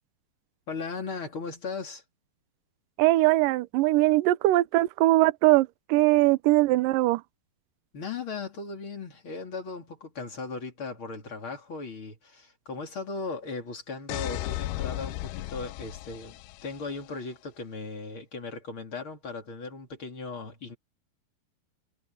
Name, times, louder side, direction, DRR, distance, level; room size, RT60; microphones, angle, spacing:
voice 1, 0.7-2.0 7.9-20.8, left 4 dB, 35° left, 3.3 m, -37 dB
voice 2, 3.0-7.2, right 18 dB, 80° right, 2.0 m, -21 dB
sound 1, 14.1-17.0, left 17 dB, 80° left, 2.4 m, -35 dB
omnidirectional pair, 4.6 m